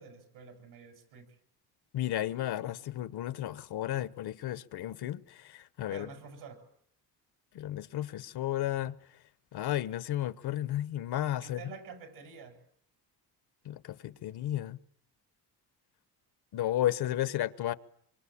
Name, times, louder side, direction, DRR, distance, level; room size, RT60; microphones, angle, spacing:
voice 1, 0.0-1.4 5.9-6.6 11.4-12.6 16.9-17.2, right 5 dB, 75° right, 7.4 m, -48 dB
voice 2, 1.9-6.1 7.5-9.0 9.5-11.6 13.6-14.8 16.5-17.7, left 13 dB, 70° left, 1.2 m, -33 dB
26.5 x 24.5 x 8.7 m
cardioid pair, 125°, 40 cm